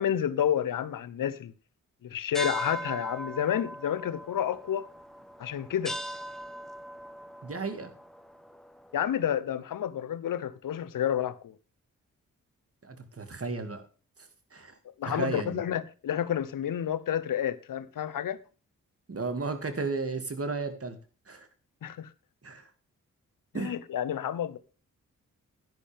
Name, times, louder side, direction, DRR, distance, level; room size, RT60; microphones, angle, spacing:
voice 1, 0.0-1.5 2.0-4.9 5.4-6.0 8.9-11.5 15.0-18.4 21.8-22.1 23.5-24.6, left 10 dB, 75° left, 0.9 m, -30 dB
sound 1, 2.3-9.2, equal, ahead, 1.3 m, -40 dB
voice 2, 7.4-7.9 12.8-13.8 14.2-14.7 15.0-15.6 19.1-21.0 21.3-21.5 22.4-22.7 23.5-23.7, right 3 dB, 45° right, 2.4 m, -34 dB
11.0 x 10.5 x 3.5 m
cardioid pair, 55°, 33 cm